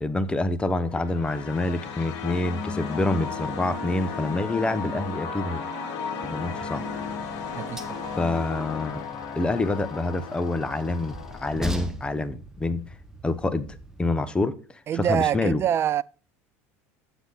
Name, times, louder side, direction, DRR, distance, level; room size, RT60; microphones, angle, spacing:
voice 1, 0.0-5.7 6.2-6.9 8.2-9.0 9.4-12.8 13.2-13.7 14.0-15.6, left 2 dB, 15° left, 0.8 m, -27 dB
sound 1, 0.8-11.9, left 7 dB, 55° left, 1.8 m, -35 dB
sound 2, 3.0-8.3, right 16 dB, 80° right, 0.6 m, -43 dB
Train, 6.4-14.1, left 1 dB, 5° right, 1.0 m, -40 dB
voice 2, 7.5-8.0 14.9-16.0, right 10 dB, 35° right, 0.3 m, -25 dB
8.0 x 7.1 x 4.0 m
supercardioid pair, 95°, 8 cm